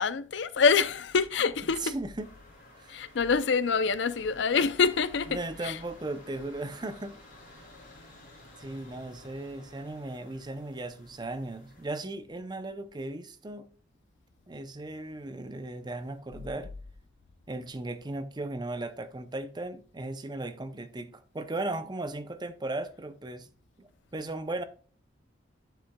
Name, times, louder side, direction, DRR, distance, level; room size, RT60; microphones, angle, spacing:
voice 1, 0.0-2.0 2.9-5.8, left 5 dB, 65° left, 0.5 m, -26 dB
voice 2, 1.8-2.3 2.8-3.0 5.3-7.2 8.6-13.7 14.5-16.7 17.5-23.5 23.8-24.6, right 2 dB, 25° right, 0.6 m, -37 dB
sound 1, 2.2-11.9, left 1 dB, 50° left, 3.4 m, -53 dB
9.1 x 7.1 x 2.3 m
head